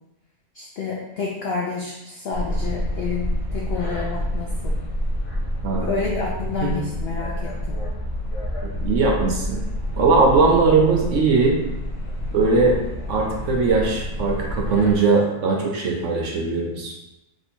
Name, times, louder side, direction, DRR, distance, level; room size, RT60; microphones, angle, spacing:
voice 1, 0.5-4.7 5.7-7.8, left 5 dB, 75° left, -2 dB, 0.5 m, -29 dB
sound 1, 2.3-15.0, equal, 55° left, 1.1 m, -28 dB
voice 2, 8.8-9.6 10.0-11.6 12.3-12.8 13.1-16.9, right 4 dB, 65° right, -1 dB, 0.9 m, -19 dB
3.0 x 2.6 x 4.3 m, 0.94 s
omnidirectional pair, 1.6 m